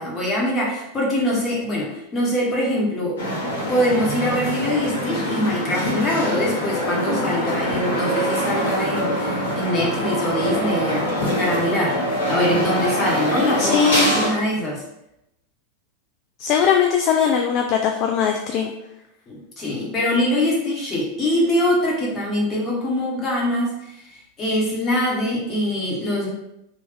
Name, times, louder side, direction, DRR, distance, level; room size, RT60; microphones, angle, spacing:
voice 1, 0.0-3.2 3.7-12.0 12.3-14.8 19.3-26.3, left 1 dB, 25° left, -4 dB, 1.3 m, -23 dB
sound 1, 3.2-14.3, equal, 60° left, 1.3 m, -24 dB
voice 2, 13.6-14.1 16.4-18.7, left 7 dB, 40° left, 3 dB, 0.3 m, -20 dB
3.2 x 2.6 x 3.6 m, 0.83 s
figure-of-eight pair, 90°, 0 cm